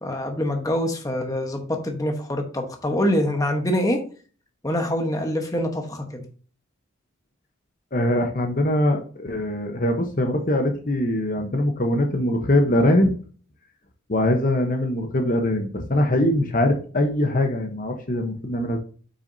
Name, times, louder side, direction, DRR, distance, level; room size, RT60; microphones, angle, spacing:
voice 1, 0.0-4.0 4.6-6.2, left 1 dB, 15° left, 3 dB, 1.1 m, -25 dB
voice 2, 7.9-13.1 14.1-18.8, left 1 dB, 40° left, 4 dB, 0.9 m, -22 dB
8.3 x 6.1 x 2.7 m, 0.40 s
head